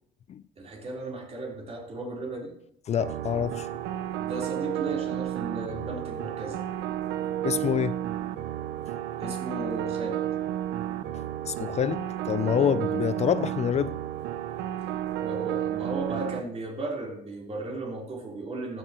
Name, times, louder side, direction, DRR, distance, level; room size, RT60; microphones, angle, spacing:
voice 1, 0.6-2.5 4.2-6.6 9.2-10.2 15.2-18.8, right 2 dB, 40° right, 3.6 m, -35 dB
voice 2, 2.9-3.7 7.4-8.0 11.1-13.9, left 9 dB, 40° left, 0.4 m, -27 dB
sound 1, 3.0-16.4, right 11 dB, 85° right, 0.7 m, -32 dB
15.0 x 12.5 x 3.0 m
cardioid pair, 110°, 17 cm